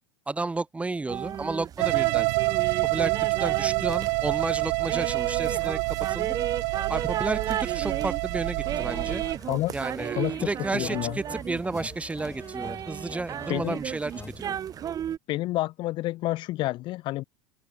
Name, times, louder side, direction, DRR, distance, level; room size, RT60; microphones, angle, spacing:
voice 1, 0.3-2.3 2.8-6.3 6.9-9.2 9.7-14.1 14.5-14.6, right 3 dB, 10° right, 4.6 m, -32 dB
sound 1, 1.1-15.2, right 9 dB, 35° right, 6.9 m, -35 dB
sound 2, 1.8-9.4, right 40 dB or more, 65° right, 4.5 m, -27 dB
sound 3, 8.6-15.1, left 5 dB, 20° left, 7.2 m, -46 dB
voice 2, 10.7-11.2 13.5-13.8 15.3-17.2, left 17 dB, 50° left, 1.1 m, -29 dB
open air
hypercardioid pair, 100°, 10 cm